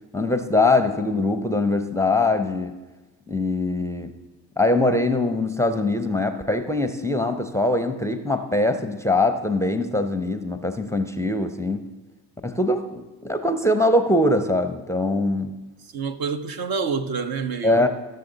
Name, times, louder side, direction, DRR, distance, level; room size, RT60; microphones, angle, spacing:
voice 1, 0.1-2.7 3.3-4.1 4.6-11.8 12.4-15.6 17.6-17.9, left 2 dB, 5° left, 0.6 m, -22 dB
voice 2, 15.8-17.9, right 5 dB, 50° right, 0.8 m, -28 dB
13.5 x 6.6 x 3.9 m
hypercardioid pair, 60°, 49 cm